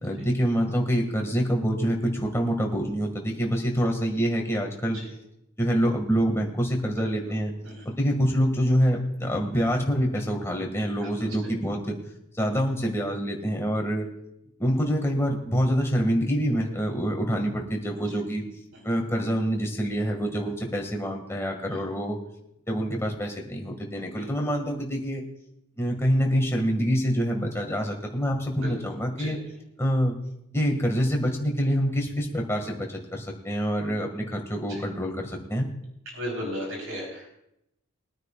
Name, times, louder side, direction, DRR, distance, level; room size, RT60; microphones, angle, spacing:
voice 1, 0.0-5.0 5.6-7.5 7.9-12.0 12.4-14.1 14.6-18.4 18.8-22.2 22.7-25.2 25.8-29.4 29.8-30.2 30.5-35.7, equal, 15° left, 1 dB, 2.1 m, -26 dB
voice 2, 36.1-37.3, equal, 70° right, -1 dB, 4.2 m, -35 dB
22.5 x 9.6 x 2.5 m, 0.81 s
head